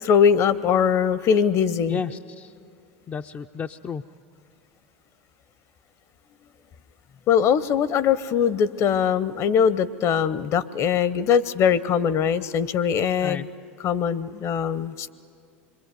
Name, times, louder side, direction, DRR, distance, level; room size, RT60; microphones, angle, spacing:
voice 1, 0.0-2.0 7.3-13.5 13.8-15.1, left 7 dB, 45° left, 16 dB, 0.9 m, -21 dB
voice 2, 1.9-2.5 3.1-4.0 13.2-13.5, left 6 dB, 30° left, 5 dB, 0.6 m, -32 dB
26.0 x 22.5 x 9.3 m, 2.3 s
hypercardioid pair, 85°, 7 cm